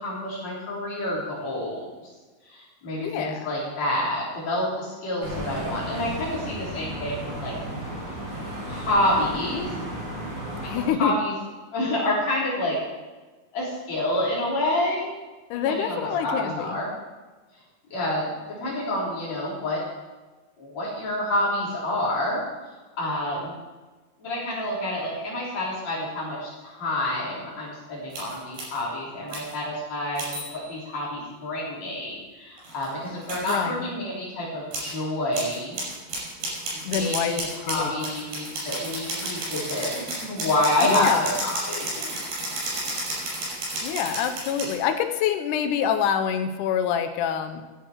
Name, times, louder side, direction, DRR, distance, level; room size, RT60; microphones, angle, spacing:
voice 1, 0.0-1.9 2.5-7.6 8.7-9.7 10.7-11.3 11.7-12.8 13.5-15.1 15.7-16.9 17.9-19.8 20.6-22.4 23.0-23.5 24.2-35.8 36.7-42.2, left 1 dB, 45° left, -6 dB, 5.0 m, -28 dB
voice 2, 3.0-3.5 10.6-11.1 15.5-16.7 33.5-33.9 36.8-37.4 37.7-38.1 40.9-41.3 43.8-47.6, left 8 dB, 85° left, 7 dB, 1.8 m, -26 dB
sound 1, 5.2-10.9, right 1 dB, 40° right, 5.6 m, -34 dB
sound 2, 28.1-28.8 29.3-29.5 30.2-30.8 32.6-33.6 34.7-34.9 35.3-44.8, right 2 dB, 85° right, 7.5 m, -32 dB
14.5 x 10.5 x 4.5 m, 1.3 s
omnidirectional pair, 4.6 m